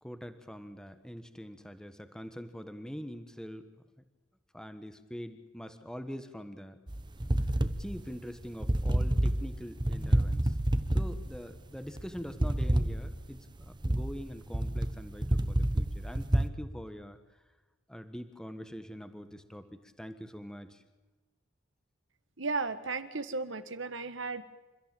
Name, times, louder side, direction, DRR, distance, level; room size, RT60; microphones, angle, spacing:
voice 1, 0.0-3.7 4.5-6.8 7.8-10.6 10.9-17.2 17.9-20.8, equal, 5° left, 9 dB, 1.3 m, -44 dB
sound 1, 6.9-16.5, right 1 dB, 25° right, 1.0 m, -29 dB
voice 2, 22.4-24.4, right 3 dB, 70° right, 11 dB, 1.6 m, -35 dB
28.5 x 14.5 x 8.9 m, 1.2 s
head